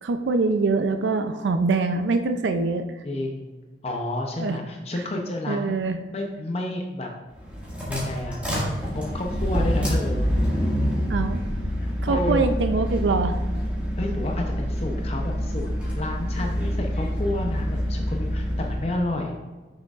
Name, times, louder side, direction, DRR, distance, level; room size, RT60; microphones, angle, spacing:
voice 1, 0.0-2.9 4.4-4.6 5.5-6.0 11.1-11.4 12.0-13.4, right 3 dB, 85° right, 8 dB, 0.4 m, -24 dB
voice 2, 3.0-3.5 3.8-5.8 6.1-7.1 7.9-10.3 10.9-11.0 11.8-12.5 14.0-19.4, left 1 dB, 35° left, 1 dB, 0.6 m, -30 dB
sound 1, 7.3-18.9, equal, 5° right, 1.8 m, -26 dB
8.3 x 6.3 x 2.4 m, 1.3 s
head